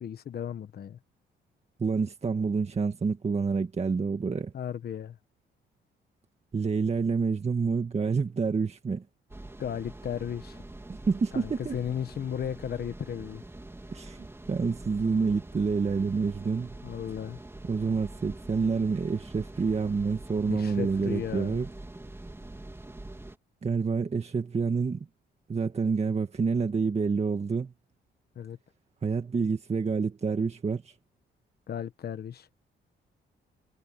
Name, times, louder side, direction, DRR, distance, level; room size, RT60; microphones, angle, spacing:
voice 1, 0.0-1.0 4.5-5.2 9.6-10.6 11.3-13.4 16.8-17.4 20.5-21.6 28.3-28.6 31.7-32.5, left 9 dB, 50° left, 1.2 m, -35 dB
voice 2, 1.8-4.5 6.5-9.0 11.1-11.8 13.9-16.8 17.7-21.7 23.6-25.1 25.5-27.7 29.0-30.9, right 5 dB, 30° right, 1.8 m, -28 dB
sound 1, 9.3-23.4, right 2 dB, 10° right, 3.1 m, -45 dB
cardioid pair, 90°, 20 cm